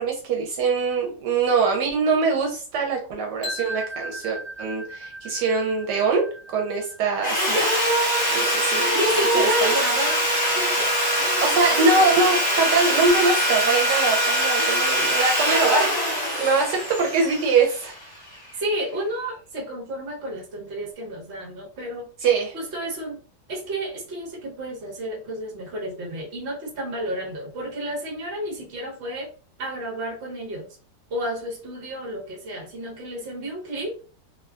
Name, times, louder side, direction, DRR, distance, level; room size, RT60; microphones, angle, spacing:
voice 1, 0.0-7.7 8.3-9.7 11.4-18.0 22.2-22.5, right 4 dB, 75° right, 1 dB, 1.2 m, -23 dB
sound 1, 3.4-9.3, right 1 dB, 35° left, 1.0 m, -38 dB
Sawing, 7.2-18.3, equal, 10° left, 1.1 m, -23 dB
voice 2, 8.9-10.3 10.5-12.1 12.3-12.6 14.6-15.1 18.6-22.1 22.5-23.2 23.5-29.3 29.6-30.7 31.1-34.0, right 1 dB, 45° right, -3 dB, 1.1 m, -31 dB
2.9 x 2.2 x 2.3 m, 0.38 s
omnidirectional pair, 1.9 m